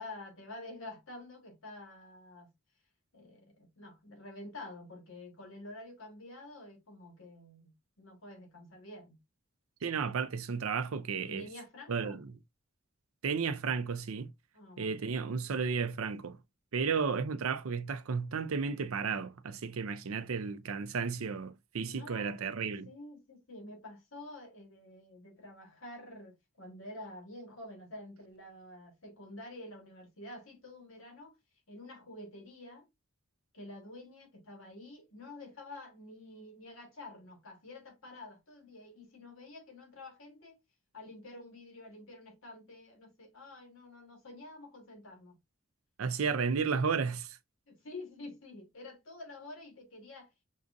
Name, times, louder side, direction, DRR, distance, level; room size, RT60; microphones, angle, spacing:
voice 1, 0.0-2.5 3.1-9.2 11.3-12.2 14.5-15.0 21.9-31.4 31.7-32.9 33.5-40.6 40.9-45.4 46.5-46.6 46.9-47.0 47.7-50.3, left 2 dB, 75° left, 1.6 m, -49 dB
voice 2, 9.8-11.5 11.9-12.2 13.2-14.3 14.8-16.4 16.7-22.9 46.0-47.3, right 5 dB, 80° right, 0.5 m, -33 dB
6.2 x 2.5 x 2.6 m
head